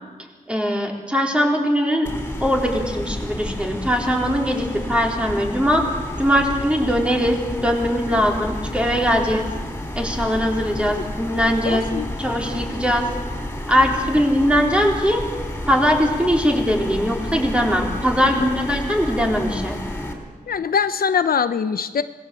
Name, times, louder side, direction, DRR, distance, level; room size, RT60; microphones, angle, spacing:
voice 1, 0.5-2.1 2.4-5.8 6.2-9.4 9.9-11.9 12.2-13.1 13.7-15.3 15.7-19.8, equal, 5° right, 0 dB, 3.9 m, -20 dB
sound 1, 2.1-20.1, left 1 dB, 15° left, 4.4 m, -30 dB
voice 2, 11.6-12.1 18.2-18.3 20.5-22.0, left 6 dB, 75° left, 11 dB, 0.8 m, -22 dB
26.0 x 19.5 x 7.7 m, 1.4 s
wide cardioid pair, 120°, 15 cm